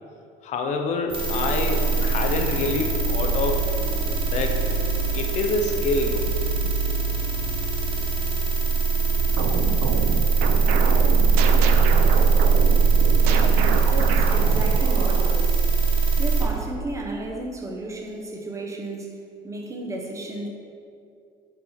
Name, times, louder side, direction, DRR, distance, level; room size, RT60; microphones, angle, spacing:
voice 1, 0.4-3.7 4.2-4.6 5.1-6.3, left 3 dB, 50° left, 4 dB, 0.6 m, -26 dB
sound 1, 1.1-16.4, right 4 dB, 35° right, 1.1 m, -21 dB
sound 2, 9.2-15.4, right 6 dB, 85° right, 0.5 m, -28 dB
voice 2, 13.8-19.1 19.4-20.5, right 2 dB, 20° right, 0 dB, 0.8 m, -33 dB
6.6 x 4.4 x 4.2 m, 2.3 s
cardioid pair, 145°, 16 cm